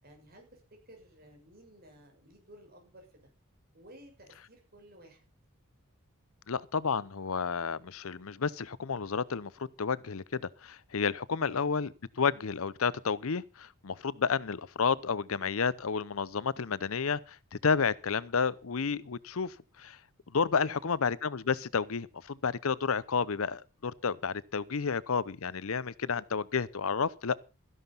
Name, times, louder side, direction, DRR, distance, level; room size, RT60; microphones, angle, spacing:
voice 1, 0.0-0.6 0.9-3.1 3.7-5.2 11.3-11.6 20.6-21.0, right 1 dB, 45° right, 6.7 m, -55 dB
voice 2, 6.5-10.2 10.6-20.0 20.3-27.4, left 5 dB, 70° left, 0.7 m, -31 dB
14.0 x 11.0 x 5.6 m
head